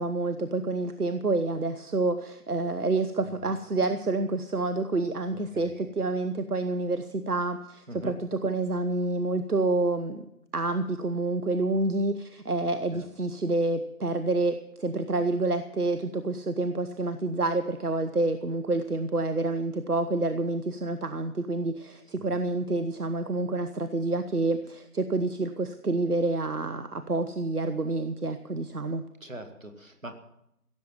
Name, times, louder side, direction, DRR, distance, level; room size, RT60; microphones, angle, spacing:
voice 1, 0.0-10.3 10.5-29.0, right 2 dB, 75° right, 10 dB, 1.1 m, -28 dB
voice 2, 29.2-30.1, right 1 dB, 55° right, 6 dB, 2.2 m, -42 dB
16.0 x 7.4 x 9.3 m, 0.81 s
figure-of-eight pair, 175°, 46 cm